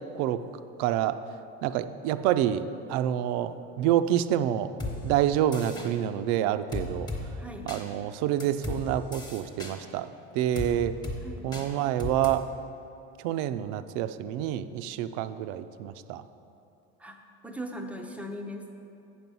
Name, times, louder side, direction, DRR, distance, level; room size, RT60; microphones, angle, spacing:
voice 1, 0.8-1.2 1.6-4.7 5.0-7.1 7.7-10.9 11.4-12.5 13.2-16.2, right 11 dB, 65° right, 12 dB, 0.5 m, -27 dB
sound 1, 4.8-4.9 5.5-5.9 6.7-7.2 7.7-7.8 8.4-8.8 9.1-9.7 10.5-10.7 11.0-11.2 11.5-11.6 12.0-12.3, left 2 dB, 15° left, 1.1 m, -34 dB
voice 2, 7.4-7.7 11.2-11.5 17.0-17.2 17.4-18.7, equal, 5° right, 3 dB, 0.5 m, -39 dB
8.5 x 6.1 x 5.4 m, 2.8 s
cardioid pair, 145°, 31 cm